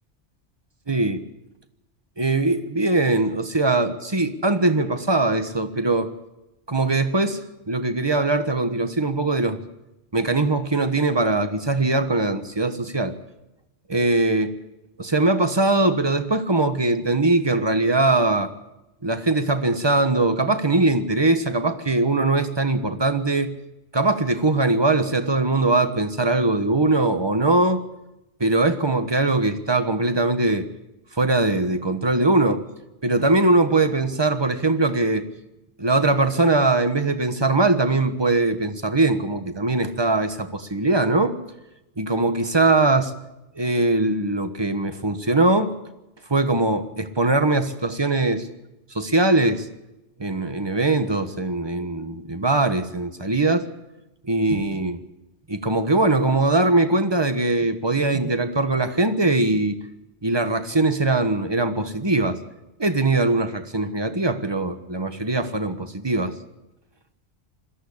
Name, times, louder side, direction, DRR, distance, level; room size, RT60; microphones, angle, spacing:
voice 1, 0.9-1.2 2.2-6.1 6.7-7.4 7.7-9.6 10.1-13.1 13.9-14.5 15.0-18.5 19.0-23.5 23.9-27.8 28.4-30.7 31.1-32.6 33.0-35.2 35.8-41.4 42.0-43.1 43.5-45.7 46.3-48.5 48.9-49.7 50.2-53.6 54.3-55.0 55.5-59.8 60.2-62.4 62.8-66.3, right 2 dB, 25° right, 9 dB, 1.3 m, -21 dB
21.5 x 14.0 x 8.6 m, 0.95 s
omnidirectional pair, 1.2 m